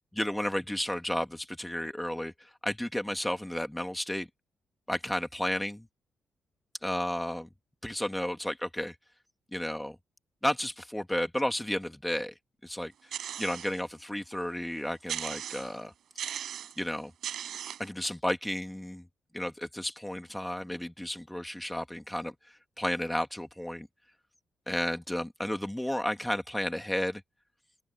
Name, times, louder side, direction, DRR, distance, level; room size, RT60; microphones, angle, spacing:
voice 1, 0.1-4.3 4.9-5.8 6.8-7.5 7.8-8.9 9.5-9.9 10.4-12.3 12.6-12.9 13.4-15.9 16.8-17.1 17.8-19.0 19.3-23.9 24.7-27.2, left 1 dB, 5° left, 1.3 m, -32 dB
sound 1, 13.1-13.8 14.3-14.4 15.1-15.8 16.2-16.8 17.2-17.9, right 9 dB, 65° right, 3.5 m, -37 dB
open air
wide cardioid pair, 170°, 0 cm